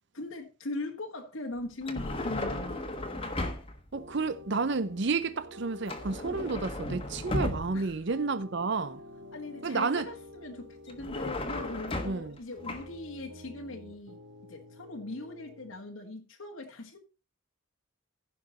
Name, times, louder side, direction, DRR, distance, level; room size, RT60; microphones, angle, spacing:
voice 1, 0.1-2.8 7.7-8.0 9.3-17.0, left 2 dB, 75° left, 1.6 m, -40 dB
sound 1, 1.8-3.9 5.9-8.0 10.9-12.4 12.6-12.9, left 1 dB, 25° left, 1.4 m, -35 dB
voice 2, 3.9-9.0 9.6-10.1 12.0-12.4, right 4 dB, 55° right, 0.7 m, -31 dB
sound 2, 3.9-15.8, left 1 dB, 90° right, 3.0 m, -49 dB
15.5 x 5.9 x 4.2 m
head